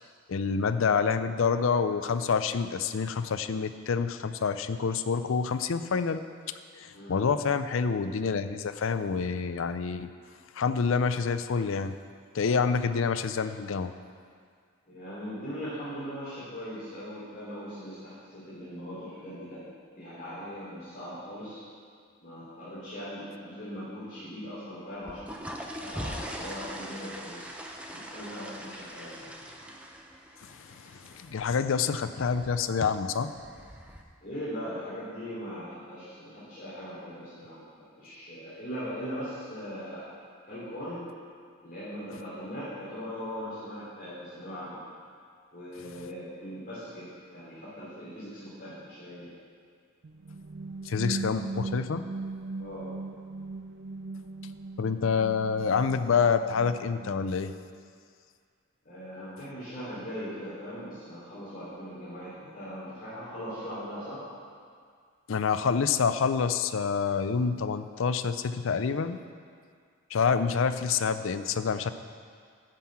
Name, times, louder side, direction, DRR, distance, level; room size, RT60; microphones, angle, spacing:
voice 1, 0.3-6.2 6.8-10.1 10.6-11.9 12.3-13.9 30.5-33.3 50.8-52.0 54.8-57.5 65.3-69.2 70.1-71.9, left 5 dB, 65° left, 11 dB, 0.4 m, -27 dB
voice 2, 14.9-19.6 19.9-21.6 22.2-27.5 27.9-29.3 34.2-37.7 38.0-40.1 40.5-41.1 41.6-44.8 45.5-49.3 52.5-52.9 58.8-64.2, equal, 40° left, -11 dB, 3.1 m, -40 dB
sound 1, 24.9-34.0, equal, 5° right, 0.7 m, -42 dB
sound 2, 50.0-57.8, right 3 dB, 55° right, 0.5 m, -39 dB
10.0 x 5.7 x 7.3 m, 2.1 s
head